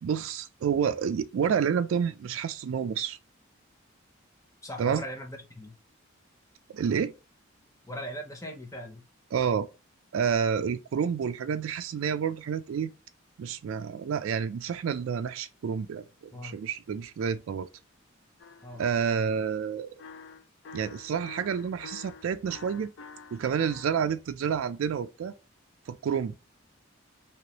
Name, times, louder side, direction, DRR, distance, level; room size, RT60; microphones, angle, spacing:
voice 1, 0.0-3.2 4.8-5.0 6.7-7.1 9.3-9.7 10.1-12.9 13.4-17.7 18.7-19.9 20.7-22.9 23.3-25.3 25.9-26.4, right 7 dB, 75° right, 0.3 m, -29 dB
voice 2, 4.6-5.7 7.9-9.0 16.3-16.6 18.6-18.8, equal, 15° left, 0.6 m, -39 dB
sound 1, 18.4-18.9 20.0-24.0, left 5 dB, 60° left, 0.4 m, -47 dB
3.1 x 2.9 x 2.9 m
head